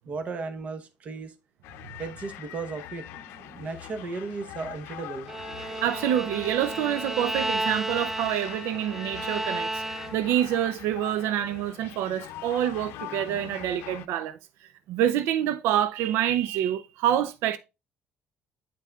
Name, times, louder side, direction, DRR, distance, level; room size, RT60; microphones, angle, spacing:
voice 1, 0.1-1.3 2.0-5.3, right 4 dB, 35° right, 0.9 m, -35 dB
São Paulo suburbs - The sounds of a flow, 1.6-14.1, left 13 dB, 85° left, 0.6 m, -43 dB
Bowed string instrument, 5.3-10.4, right 1 dB, 10° right, 0.4 m, -33 dB
voice 2, 5.6-9.8 10.1-14.4 14.9-17.6, right 11 dB, 90° right, 0.5 m, -27 dB
8.6 x 5.5 x 2.3 m
cardioid pair, 155°, 4 cm